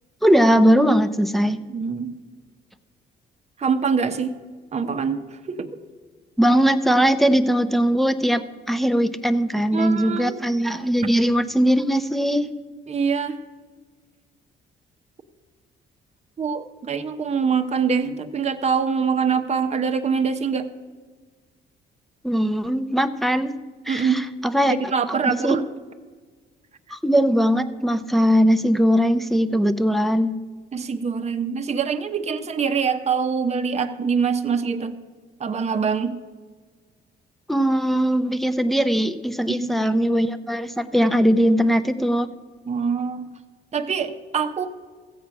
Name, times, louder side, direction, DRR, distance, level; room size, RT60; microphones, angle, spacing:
voice 1, 0.2-1.6 6.4-12.5 22.2-23.5 23.9-24.7 25.1-25.6 26.9-30.4 37.5-42.3, equal, ahead, 9 dB, 0.7 m, -20 dB
voice 2, 1.7-2.2 3.6-4.3 4.7-5.2 5.5-5.8 9.7-10.4 12.9-13.4 16.4-20.7 23.9-24.3 24.7-25.6 30.7-35.0 35.4-36.2 39.5-39.9 42.7-43.3 43.7-44.7, right 6 dB, 35° right, 6 dB, 0.9 m, -24 dB
14.5 x 8.1 x 6.0 m, 1.5 s
cardioid pair, 90°, 20 cm